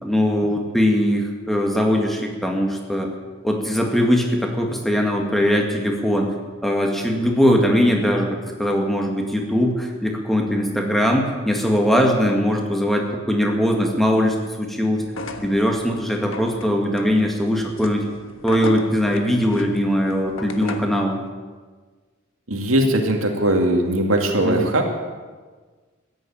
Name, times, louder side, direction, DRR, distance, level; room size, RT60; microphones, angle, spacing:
voice 1, 0.0-3.1 3.4-6.3 6.6-15.0 15.4-18.0 18.4-21.2 24.4-24.7, equal, ahead, 1 dB, 2.0 m, -20 dB
sound 1, 15.1-21.0, left 2 dB, 75° left, 1.3 m, -35 dB
voice 2, 22.5-24.9, right 1 dB, 80° right, 2 dB, 2.4 m, -20 dB
14.5 x 10.5 x 8.7 m, 1.4 s
head